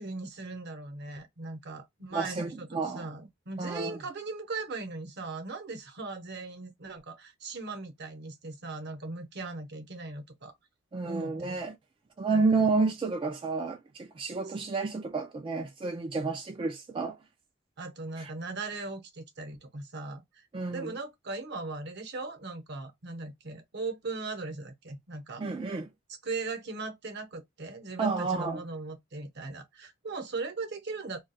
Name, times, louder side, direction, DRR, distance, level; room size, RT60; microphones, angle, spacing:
voice 1, 0.0-10.6 11.0-11.5 12.3-12.7 14.5-14.6 17.8-20.4 20.7-25.4 26.2-31.2, right 3 dB, 55° right, 0.8 m, -39 dB
voice 2, 2.1-3.1 3.6-4.0 10.9-11.7 12.2-17.2 18.2-18.3 20.5-20.9 25.4-25.9 28.0-28.6, right 4 dB, 25° right, 0.3 m, -30 dB
2.3 x 2.3 x 3.9 m
head